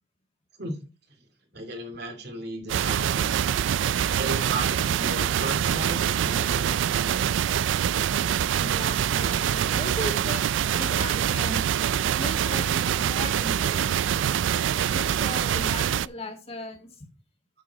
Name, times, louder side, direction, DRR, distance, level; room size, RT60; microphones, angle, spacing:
voice 1, 1.5-3.3 4.1-6.7 7.0-7.3, right 1 dB, 60° right, 4 dB, 2.7 m, -35 dB
sound 1, 2.7-16.1, right 9 dB, 80° right, 0.3 m, -25 dB
voice 2, 8.6-10.5 10.7-11.7 12.2-14.1 14.8-16.9, left 1 dB, 35° left, 3 dB, 2.1 m, -37 dB
9.7 x 6.4 x 4.1 m, 0.31 s
head